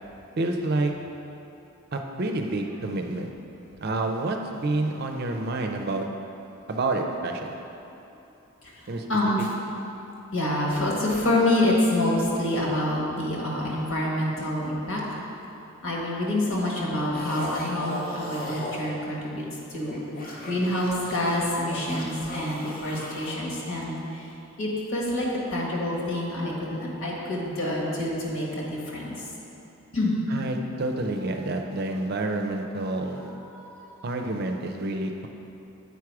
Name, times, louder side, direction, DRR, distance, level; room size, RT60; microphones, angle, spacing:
voice 1, 0.4-0.9 1.9-3.3 3.8-6.1 6.7-7.6 8.9-9.0 30.3-33.3 34.0-35.3, right 2 dB, 45° right, 3 dB, 0.5 m, -28 dB
voice 2, 9.1-9.5 10.3-15.0 15.8-19.4 19.7-20.0 20.5-24.3 24.6-29.2 29.9-30.2 32.9-33.0 33.5-33.9, left 1 dB, 70° left, -3 dB, 1.5 m, -27 dB
sound 1, 17.1-18.9 19.7-23.4, equal, 40° left, 0.8 m, -37 dB
8.2 x 4.8 x 4.7 m, 2.9 s
head